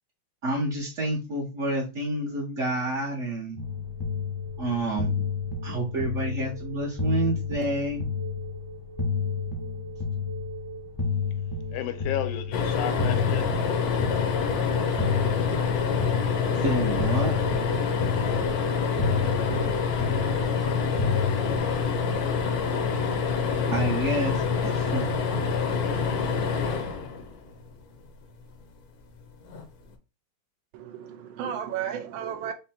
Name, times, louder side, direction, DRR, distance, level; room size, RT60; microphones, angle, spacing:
voice 1, 0.4-3.6 4.6-5.2 5.6-8.0 16.5-17.4 23.7-25.1, right 1 dB, 50° right, 0.9 m, -29 dB
sound 1, 3.6-21.6, left 5 dB, 20° left, 0.7 m, -31 dB
voice 2, 11.7-13.6 25.6-26.1 26.4-26.7 27.0-27.3, left 10 dB, 80° left, 1.5 m, -34 dB
sound 2, 12.5-27.8 29.5-29.6 29.9-30.0, left 5 dB, 65° left, 1.0 m, -26 dB
voice 3, 30.7-32.5, right 9 dB, 75° right, 1.2 m, -33 dB
5.3 x 2.2 x 4.2 m
omnidirectional pair, 2.3 m